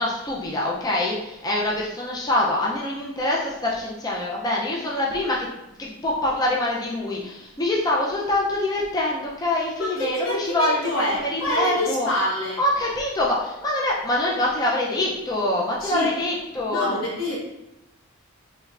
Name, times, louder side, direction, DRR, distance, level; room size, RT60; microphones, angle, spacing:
voice 1, 0.0-5.5 5.8-12.1 12.6-17.0, left 1 dB, 20° left, -4 dB, 0.4 m, -25 dB
voice 2, 9.8-12.6 15.8-16.1 16.6-17.4, equal, 85° left, -5 dB, 1.1 m, -26 dB
3.2 x 3.1 x 2.4 m, 0.93 s
head